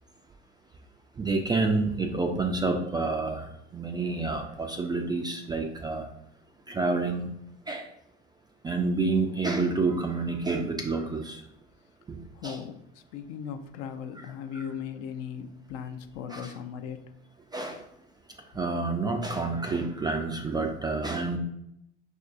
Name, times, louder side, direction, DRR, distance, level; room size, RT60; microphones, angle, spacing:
voice 1, 1.2-3.5 3.7-6.1 6.7-7.3 7.7-7.9 8.6-11.4 12.1-12.2 12.4-12.6 14.1-14.2 16.3-16.5 17.5-17.8 18.5-21.4, right 3 dB, 15° right, 3 dB, 0.3 m, -28 dB
voice 2, 12.4-12.8 13.1-17.0, left 7 dB, 45° left, 8 dB, 0.5 m, -38 dB
5.7 x 2.6 x 2.5 m, 0.78 s
figure-of-eight pair, 70°, 34 cm